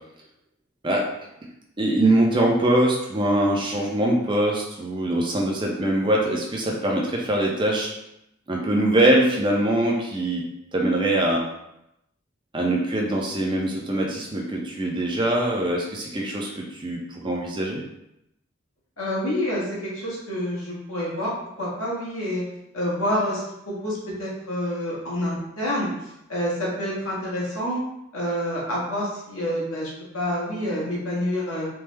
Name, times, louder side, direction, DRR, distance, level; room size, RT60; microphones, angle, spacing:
voice 1, 1.8-7.9 8.5-10.5 10.7-11.4 12.5-17.8, right 1 dB, 25° right, -1 dB, 0.5 m, -23 dB
voice 2, 19.0-22.4 22.7-25.9 26.3-27.8 28.1-31.7, equal, 90° left, -6 dB, 1.2 m, -28 dB
3.3 x 2.0 x 3.3 m, 0.83 s
head